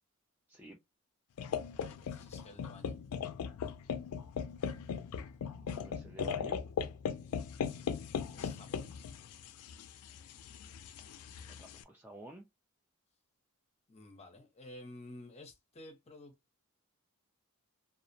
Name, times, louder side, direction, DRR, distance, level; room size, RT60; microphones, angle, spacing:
sound 1, 1.4-11.8, left 7 dB, 70° left, 0.3 m, -39 dB
voice 1, 1.7-3.0 8.3-8.9 13.9-16.3, left 1 dB, 30° left, 0.6 m, -52 dB
voice 2, 5.6-6.6 11.5-12.4, right 1 dB, 10° right, 0.3 m, -51 dB
2.4 x 2.0 x 2.6 m
head